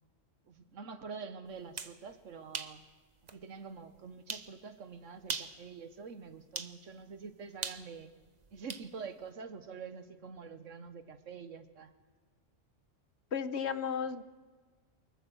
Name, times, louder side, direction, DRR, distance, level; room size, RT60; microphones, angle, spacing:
voice 1, 0.5-2.8 3.3-8.1 8.5-11.9, right 5 dB, 75° right, 10 dB, 1.6 m, -46 dB
sound 1, 1.5-2.0 2.5-2.8 3.3-3.4 4.3-4.5 5.2-5.6 6.5-6.8 7.6-8.9, right 4 dB, 35° right, 1.0 m, -39 dB
voice 2, 13.3-14.2, left 7 dB, 60° left, 12 dB, 1.1 m, -34 dB
24.5 x 22.0 x 6.4 m, 1.4 s
omnidirectional pair, 1.3 m